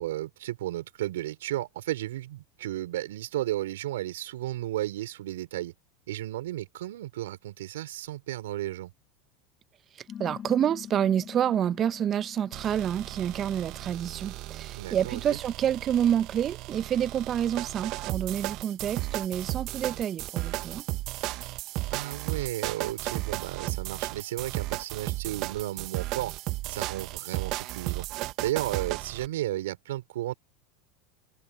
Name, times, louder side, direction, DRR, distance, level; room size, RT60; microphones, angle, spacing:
voice 1, 0.0-5.7 6.1-8.9 14.7-15.4 21.9-26.3 26.7-30.3, right 14 dB, 80° right, 5.4 m, -34 dB
voice 2, 10.0-20.8, right 9 dB, 35° right, 0.7 m, -28 dB
sound 1, 10.1-15.0, left 9 dB, 35° left, 5.1 m, -46 dB
sound 2, 12.5-29.3, right 19 dB, 55° right, 1.1 m, -35 dB
hypercardioid pair, 95°, 0 cm